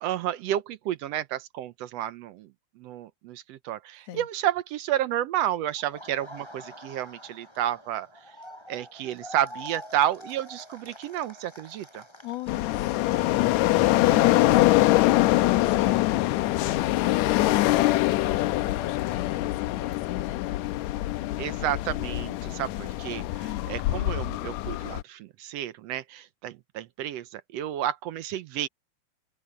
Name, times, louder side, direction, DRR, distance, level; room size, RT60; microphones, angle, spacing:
voice 1, 0.0-2.5 2.8-8.1 8.7-12.0 14.0-14.7 21.4-28.7, right 12 dB, 75° right, 1.7 m, -31 dB
Laughter, 5.8-15.6 15.9-18.0, equal, 10° left, 7.5 m, -47 dB
voice 2, 12.2-20.6 23.4-23.7, left 13 dB, 60° left, 2.6 m, -39 dB
sound 1, 12.5-25.0, left 17 dB, 80° left, 1.9 m, -24 dB
open air
omnidirectional pair, 3.4 m